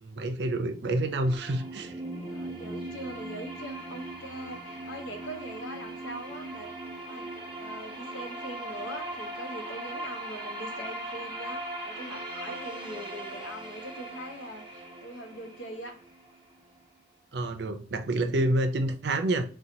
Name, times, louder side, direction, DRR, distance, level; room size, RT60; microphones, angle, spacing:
voice 1, 0.0-2.0 17.3-19.4, right 1 dB, 65° right, 0.5 m, -28 dB
sound 1, 0.8-16.8, right 1 dB, 30° right, 0.9 m, -39 dB
voice 2, 2.3-6.7 7.1-7.3 7.6-16.0, equal, 90° left, 0.9 m, -42 dB
4.3 x 2.3 x 2.7 m
head